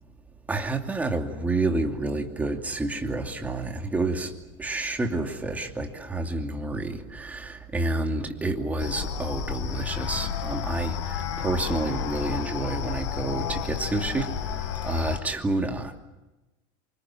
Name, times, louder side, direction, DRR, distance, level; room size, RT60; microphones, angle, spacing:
voice 1, 0.5-4.3 4.6-14.3 14.8-16.0, right 2 dB, 10° right, 3 dB, 2.6 m, -29 dB
sound 1, 8.8-15.2, left 9 dB, 75° left, 5.5 m, -31 dB
28.5 x 24.5 x 7.5 m, 1.1 s
supercardioid pair, 140°, 15 cm